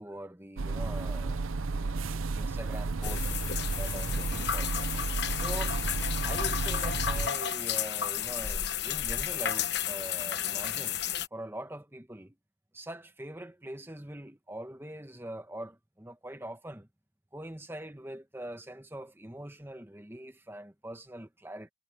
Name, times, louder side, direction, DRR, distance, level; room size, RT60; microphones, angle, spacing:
voice 1, 0.0-3.3 3.8-4.9 5.3-5.8 6.2-11.0 11.3-12.4 12.7-16.9 17.3-21.7, right 1 dB, 10° right, 1.2 m, -43 dB
sound 1, 0.6-7.3, right 3 dB, 85° right, 0.7 m, -32 dB
sound 2, 3.0-11.3, left 9 dB, 55° left, 1.2 m, -32 dB
head